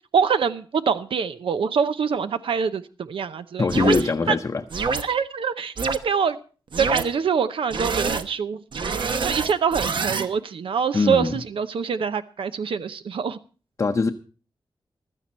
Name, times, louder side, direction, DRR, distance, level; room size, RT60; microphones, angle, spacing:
voice 1, 0.1-4.0 4.3-4.4 5.0-6.4 6.8-8.6 9.2-13.4, right 6 dB, 90° right, 0.8 m, -25 dB
voice 2, 3.6-4.6 10.9-11.3 13.8-14.1, left 4 dB, 35° left, 0.7 m, -22 dB
sound 1, 3.7-4.0 4.7-5.0 5.8-6.0 6.7-7.0 7.7-8.2 8.7-10.3, right 5 dB, 65° right, 1.0 m, -25 dB
15.5 x 12.5 x 4.3 m
wide cardioid pair, 155°, 9 cm